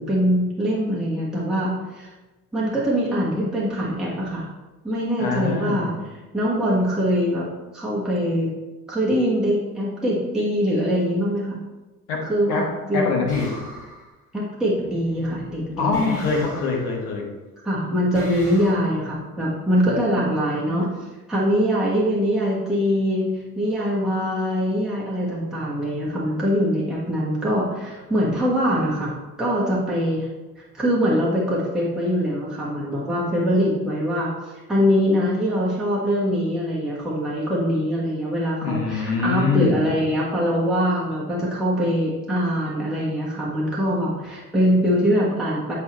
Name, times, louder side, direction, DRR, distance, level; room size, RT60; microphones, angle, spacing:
voice 1, 0.0-2.1 2.5-4.5 4.8-5.9 6.3-7.4 7.7-8.5 8.9-11.6 12.3-12.6 12.9-13.1 14.3-16.1 17.6-20.9 21.3-23.3 23.6-30.3 30.7-45.7, equal, ahead, -7 dB, 1.5 m, -23 dB
voice 2, 5.2-6.0 12.1-13.5 15.8-17.3 38.6-39.9, left 4 dB, 60° left, 0 dB, 1.5 m, -24 dB
sound 1, 13.3-14.1 15.9-17.0 18.1-18.7, equal, 85° left, 2.0 m, -39 dB
8.2 x 4.7 x 3.1 m, 1.2 s
figure-of-eight pair, 55°, 46 cm